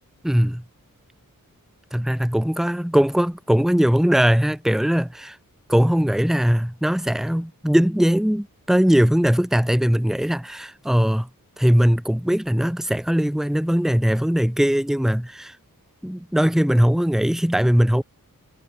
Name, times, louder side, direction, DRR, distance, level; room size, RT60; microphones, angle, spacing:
voice 1, 0.2-0.6 1.9-5.4 5.7-11.3 11.6-15.6 16.0-18.0, equal, ahead, 1.5 m, -20 dB
wide cardioid pair, 55°, 35 cm